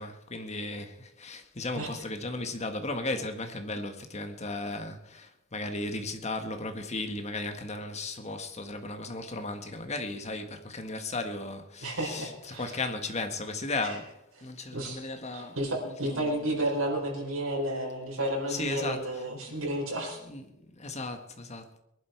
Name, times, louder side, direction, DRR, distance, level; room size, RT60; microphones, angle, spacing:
voice 1, 0.0-15.6 15.8-16.2 18.5-19.0 19.5-19.6 20.2-21.8, left 2 dB, 35° left, 1.5 m, -36 dB
voice 2, 11.8-12.8 13.8-14.0 14.7-15.0 15.3-20.2, right 1 dB, 85° right, 4.6 m, -32 dB
21.5 x 11.5 x 4.6 m
head